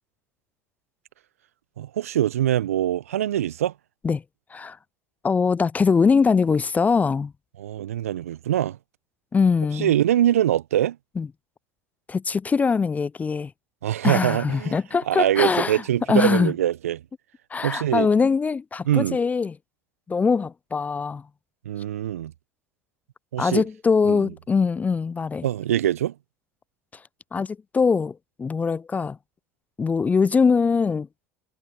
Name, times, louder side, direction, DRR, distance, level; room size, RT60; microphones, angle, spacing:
voice 1, 1.8-3.7 7.6-8.8 9.7-11.0 13.8-14.8 15.1-17.0 17.6-18.1 18.8-19.2 21.6-22.3 23.3-23.6 24.1-24.3 25.4-26.1, right 11 dB, 75° right, 1.0 m, -23 dB
voice 2, 5.2-7.3 9.3-9.9 11.2-11.3 12.1-13.5 14.0-15.8 16.1-16.5 17.5-19.5 20.1-21.2 23.4-25.4 27.3-29.2 29.8-31.1, left 5 dB, 20° left, 0.4 m, -22 dB
figure-of-eight pair, 70°, 8 cm